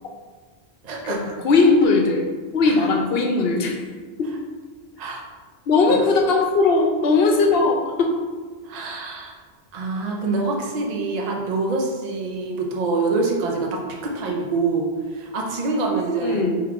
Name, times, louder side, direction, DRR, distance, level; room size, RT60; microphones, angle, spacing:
voice 1, 0.8-1.3 2.6-2.7 5.0-5.2 5.9-6.0 8.6-9.3 9.7-16.5, right 3 dB, 45° right, 0 dB, 0.7 m, -25 dB
voice 2, 1.4-2.3 2.5-3.8 4.2-4.4 5.7-8.2 16.2-16.6, left 3 dB, 70° left, 2 dB, 0.9 m, -18 dB
3.7 x 3.0 x 4.7 m, 1.5 s
omnidirectional pair, 1.1 m